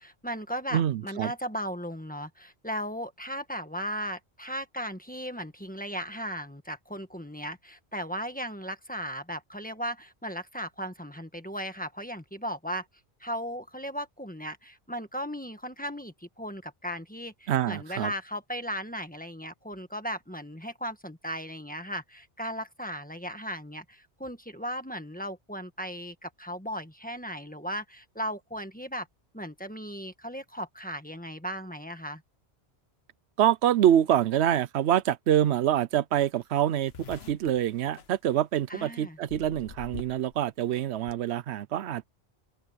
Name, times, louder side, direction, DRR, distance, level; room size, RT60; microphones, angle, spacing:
voice 1, 0.0-12.8 13.2-29.1 29.3-32.2 38.7-39.2, equal, 10° left, 1.5 m, -36 dB
voice 2, 0.7-1.3 17.5-18.1 33.4-42.1, right 11 dB, 85° right, 0.9 m, -25 dB
sound 1, 36.1-36.2 36.4-38.8 39.3-40.4 40.6-41.1, left 7 dB, 75° left, 1.3 m, -45 dB
open air
omnidirectional pair, 1.1 m